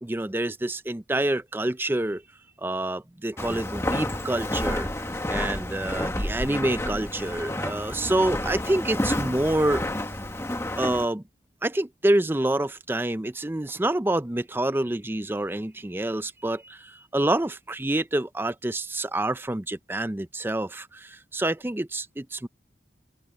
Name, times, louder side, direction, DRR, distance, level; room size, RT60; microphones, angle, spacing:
voice 1, 0.0-2.2 2.6-4.9 5.3-9.8 10.8-11.2 11.6-22.5, right 1 dB, 10° right, 0.4 m, -27 dB
Walk footsteps, 3.4-11.1, left 1 dB, 15° left, 1.3 m, -30 dB
open air
head